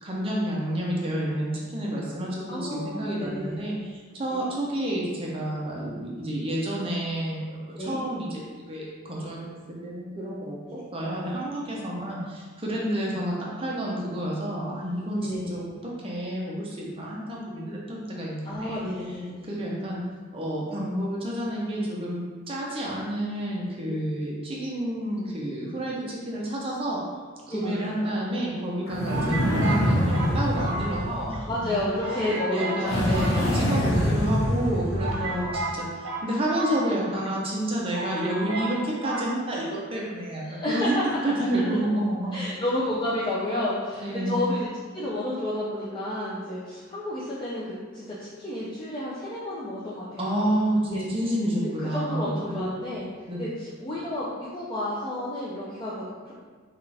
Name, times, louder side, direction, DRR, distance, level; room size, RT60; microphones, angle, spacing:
voice 1, 0.0-9.4 9.8-18.8 19.5-20.0 20.3-27.0 27.4-31.5 32.1-42.4 44.0-44.5 50.2-52.6 53.3-53.4, right 1 dB, 25° right, -4 dB, 0.7 m, -30 dB
voice 2, 2.5-3.6 4.3-4.5 7.8-8.0 10.7-10.8 15.2-15.6 18.4-19.5 27.5-27.9 29.1-29.4 31.5-33.4 35.2-35.4 40.4-41.2 42.3-44.7 44.9-50.5 50.8-51.0 51.6-53.1 53.4-56.3, left 1 dB, 20° left, -8 dB, 0.5 m, -31 dB
sound 1, 27.6-28.4 29.1-31.4 31.6-31.7 32.0-32.8 33.1-34.1 34.6-34.7 35.0-37.3 37.6-37.7 37.9-38.8 39.0-39.3, right 2 dB, 90° right, 0.7 m, -33 dB
sound 2, 28.9-31.9 32.8-35.6, equal, 90° left, 1.1 m, -25 dB
5.6 x 2.5 x 3.3 m, 1.5 s
head